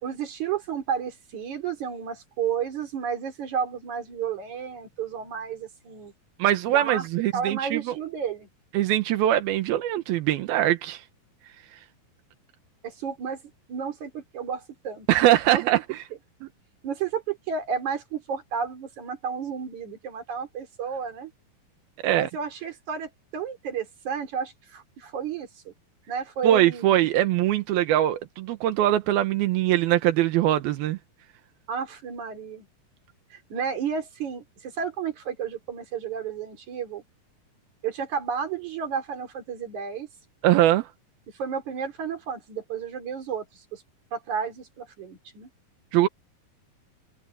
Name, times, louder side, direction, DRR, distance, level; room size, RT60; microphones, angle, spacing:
voice 1, 0.0-6.1 6.7-7.1 7.3-8.5 12.8-13.4 13.7-15.1 15.5-15.8 16.8-21.3 22.1-25.7 26.1-26.9 31.7-32.7 33.3-37.0 37.8-40.1 41.3-43.8 44.1-45.5, right 7 dB, 55° right, 4.9 m, -32 dB
voice 2, 6.4-7.9 8.7-11.0 15.1-16.0 22.0-22.3 26.4-31.0 40.4-40.9 45.9-46.1, right 13 dB, 85° right, 3.0 m, -22 dB
omnidirectional pair, 4.2 m